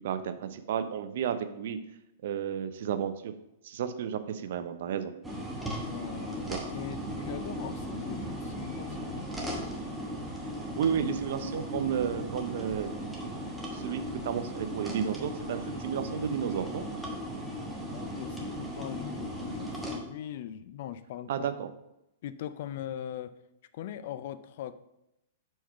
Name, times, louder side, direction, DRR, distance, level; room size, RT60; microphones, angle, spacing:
voice 1, 0.0-1.8 2.2-3.3 3.6-5.1 6.5-6.6 10.7-13.0 13.7-16.9 21.3-21.7, right 8 dB, 65° right, 10 dB, 0.6 m, -32 dB
sound 1, 5.2-20.0, equal, ahead, 1.0 m, -37 dB
voice 2, 5.8-9.3 17.4-21.3 22.2-23.3 23.7-24.7, left 10 dB, 55° left, 13 dB, 0.4 m, -41 dB
4.6 x 4.5 x 5.6 m, 0.86 s
hypercardioid pair, 150°, 0 cm